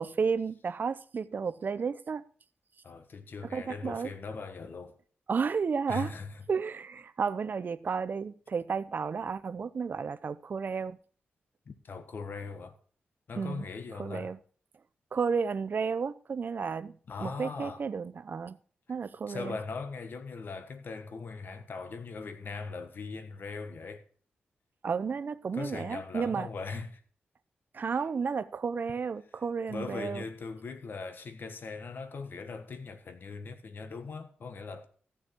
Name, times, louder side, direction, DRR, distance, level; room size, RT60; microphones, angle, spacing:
voice 1, 0.0-2.2 3.5-4.1 5.3-6.1 6.5-11.0 13.4-13.7 14.0-14.4 15.1-16.9 17.2-18.6 18.9-19.6 24.8-26.5 27.7-30.2, right 5 dB, 55° right, 0.6 m, -32 dB
voice 2, 2.8-5.0 5.9-6.4 11.6-12.8 13.3-14.3 17.1-17.8 19.3-24.0 25.5-27.0 29.7-34.9, left 4 dB, 60° left, 1.4 m, -40 dB
14.0 x 7.0 x 4.5 m
cardioid pair, 80°, 4 cm